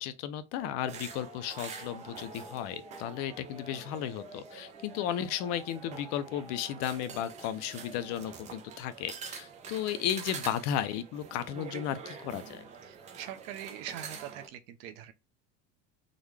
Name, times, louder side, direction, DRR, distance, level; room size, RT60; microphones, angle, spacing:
voice 1, 0.0-12.6, left 10 dB, 55° left, 0.5 m, -34 dB
sound 1, 0.6-7.9, left 1 dB, 10° right, 1.0 m, -53 dB
sound 2, 0.9-14.5, right 6 dB, 25° right, 0.5 m, -46 dB
voice 2, 12.8-15.1, right 11 dB, 75° right, 0.7 m, -42 dB
3.8 x 2.2 x 3.2 m
cardioid pair, 170°, 31 cm